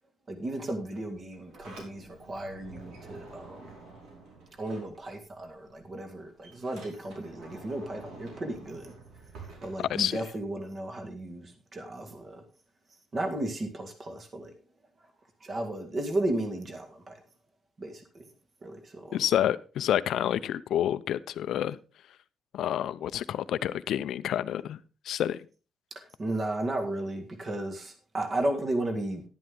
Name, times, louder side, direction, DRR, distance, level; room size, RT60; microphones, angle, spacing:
voice 1, 0.3-3.7 4.6-8.9 9.6-12.4 13.1-14.6 15.0-15.1 15.4-17.2 17.8-18.3 18.6-19.2 26.0-29.2, right 1 dB, 30° right, 2.0 m, -34 dB
Sliding door, 1.2-5.5 5.8-10.5, right 3 dB, 85° right, 5.1 m, -49 dB
voice 2, 19.1-21.8 22.5-25.5, left 11 dB, 70° left, 0.6 m, -29 dB
11.0 x 10.5 x 3.7 m
cardioid pair, 160°, 0 cm